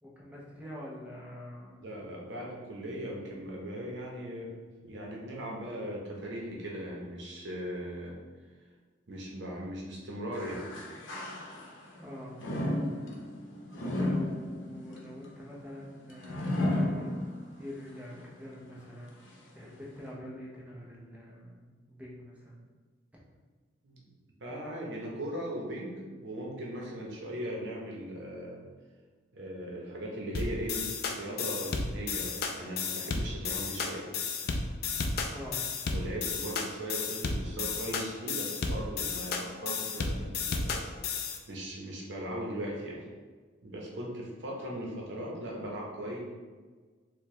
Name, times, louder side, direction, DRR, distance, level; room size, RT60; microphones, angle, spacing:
voice 1, 0.0-1.9 2.5-2.6 12.0-12.3 13.8-17.1 17.5-19.2 19.5-22.6 35.3-35.6, left 1 dB, 5° right, -5 dB, 0.6 m, -45 dB
voice 2, 1.8-4.5 4.8-8.2 9.1-10.6 23.8-24.1 24.4-28.6 29.3-34.1 35.9-41.2 41.5-43.0 43.6-46.2, right 1 dB, 70° right, -3 dB, 0.8 m, -38 dB
sound 1, 10.3-11.9 12.4-17.6 18.1-18.2 19.1-19.2, left 1 dB, 90° left, 0.7 m, -33 dB
sound 2, 30.3-41.4, left 4 dB, 50° left, 0.3 m, -33 dB
4.5 x 2.2 x 3.1 m, 1.4 s
head